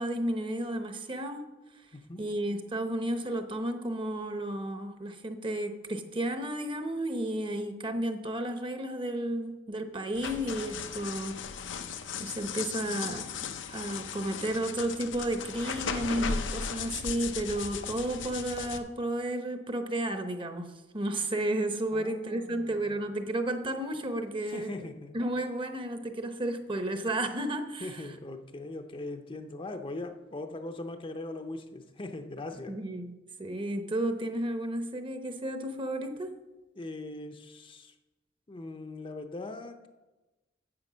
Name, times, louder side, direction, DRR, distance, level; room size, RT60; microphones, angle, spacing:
voice 1, 0.0-1.4 2.2-11.4 12.2-13.3 13.7-24.8 25.1-28.0 32.7-33.1 33.4-36.3, right 1 dB, 30° right, 7 dB, 0.9 m, -32 dB
voice 2, 1.9-2.2 21.9-23.0 24.4-25.2 27.8-32.8 36.8-37.9 38.5-39.9, left 2 dB, 30° left, 7 dB, 0.6 m, -40 dB
sound 1, 10.1-18.8, left 6 dB, 90° left, 0.7 m, -37 dB
9.7 x 7.4 x 6.2 m, 1.1 s
head